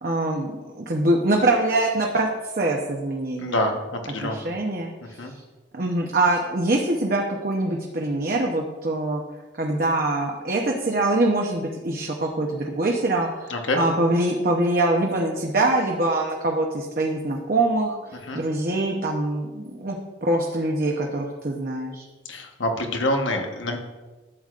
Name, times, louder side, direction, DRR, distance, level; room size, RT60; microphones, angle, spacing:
voice 1, 0.0-2.3 2.6-3.7 4.2-5.2 5.7-9.2 9.6-22.1, right 2 dB, 50° right, 0 dB, 0.8 m, -24 dB
voice 2, 3.4-4.5 5.2-5.3 13.5-13.8 18.3-18.4 22.3-23.8, left 1 dB, 85° left, 3 dB, 1.2 m, -26 dB
12.0 x 8.0 x 2.5 m, 1.2 s
head